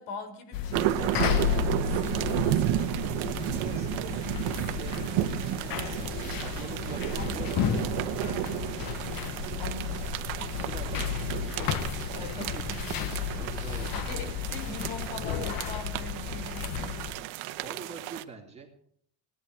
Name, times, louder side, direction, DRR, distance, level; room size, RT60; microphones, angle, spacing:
voice 1, 0.0-3.0 5.7-6.1 7.2-7.3 8.2-8.7 9.6-10.1 12.1-12.8 13.9-17.3, left 2 dB, 90° left, 8 dB, 4.0 m, -42 dB
sound 1, 0.5-17.1, left 8 dB, 45° left, 1.2 m, -33 dB
sound 2, 0.7-18.2, right 14 dB, 70° right, 1.2 m, -32 dB
voice 2, 3.4-4.2 4.5-7.9 8.4-9.0 10.6-11.8 12.1-13.0 13.4-14.4 17.6-18.9, right 5 dB, 15° right, -1 dB, 2.7 m, -45 dB
19.0 x 11.0 x 4.7 m, 0.65 s
cardioid pair, 175°, 48 cm